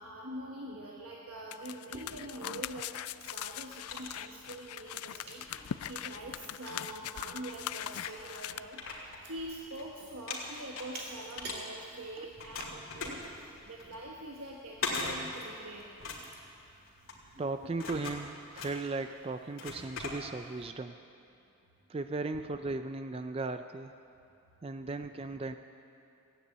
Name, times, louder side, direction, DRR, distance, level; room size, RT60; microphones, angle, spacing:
voice 1, 0.0-5.6 5.8-8.8 9.2-15.9, right 1 dB, 80° right, -2 dB, 1.2 m, -44 dB
sound 1, 1.5-8.6, left 11 dB, 85° left, 0.3 m, -41 dB
Chewing mastication, 1.9-17.7, right 2 dB, 45° right, 2.4 m, -53 dB
sound 2, 3.5-4.8 5.3-7.0 7.6-7.7 7.9-9.8 10.1-12.0 12.4-20.6, left 3 dB, 65° left, 2.3 m, -41 dB
voice 2, 17.4-21.0 21.9-23.9 24.6-25.5, right 3 dB, 25° right, 8 dB, 0.3 m, -37 dB
15.5 x 9.6 x 8.0 m, 2.7 s
head